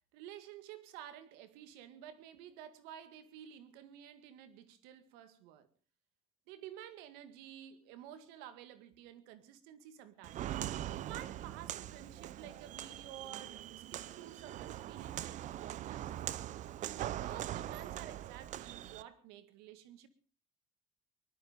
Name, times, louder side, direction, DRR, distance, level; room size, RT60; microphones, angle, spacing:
voice 1, 0.1-5.7 6.5-16.1 16.9-20.1, right 11 dB, 80° right, 2.1 m, -52 dB
Walk footsteps, 10.2-19.0, right 12 dB, 50° right, 0.8 m, -42 dB
19.5 x 13.0 x 5.2 m
cardioid pair, 120°, 16 cm